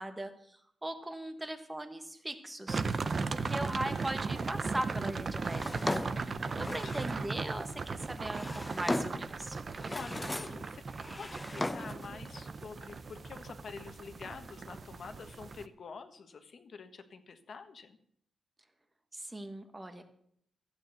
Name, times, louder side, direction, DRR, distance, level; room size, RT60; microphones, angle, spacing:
voice 1, 0.0-5.6 5.9-6.0 6.6-9.6 19.1-20.0, right 1 dB, 10° right, 8 dB, 1.3 m, -39 dB
sound 1, 2.7-15.7, right 4 dB, 30° right, 0.6 m, -37 dB
Drawer open or close, 5.4-7.3 8.1-9.3 9.7-10.6 10.9-12.1, left 1 dB, 10° left, 0.6 m, -37 dB
voice 2, 6.1-7.1 9.9-10.8 11.2-18.0, left 5 dB, 45° left, 8 dB, 1.3 m, -48 dB
14.5 x 9.0 x 6.7 m, 0.66 s
wide cardioid pair, 175°, 0 cm